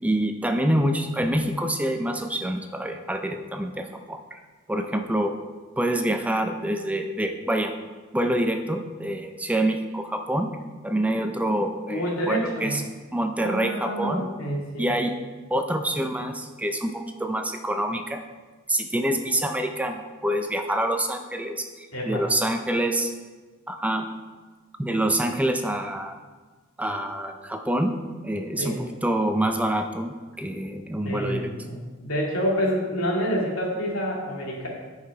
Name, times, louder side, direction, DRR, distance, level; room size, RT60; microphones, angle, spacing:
voice 1, 0.0-4.4 4.7-5.4 5.8-7.8 8.1-10.5 10.8-12.8 13.1-14.3 14.8-15.2 15.5-18.2 18.7-23.1 23.7-24.1 24.8-26.2 26.8-28.0 28.2-31.5, right 1 dB, 5° right, 5 dB, 0.5 m, -26 dB
voice 2, 11.9-12.9 13.4-14.9 21.9-22.2 28.6-28.7 31.0-34.7, equal, 85° left, -3 dB, 2.4 m, -28 dB
9.4 x 5.8 x 4.7 m, 1.3 s
head